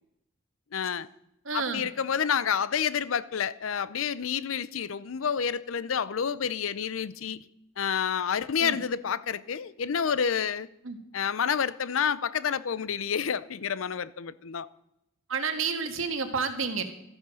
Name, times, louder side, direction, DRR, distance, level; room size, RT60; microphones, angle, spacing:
voice 1, 0.7-1.1 1.5-7.4 7.8-10.7 11.1-14.7, left 7 dB, 90° left, 0.6 m, -29 dB
voice 2, 1.4-1.8 8.6-8.8 10.8-11.0 15.3-16.8, right 5 dB, 80° right, 1.6 m, -30 dB
13.5 x 9.6 x 6.3 m
head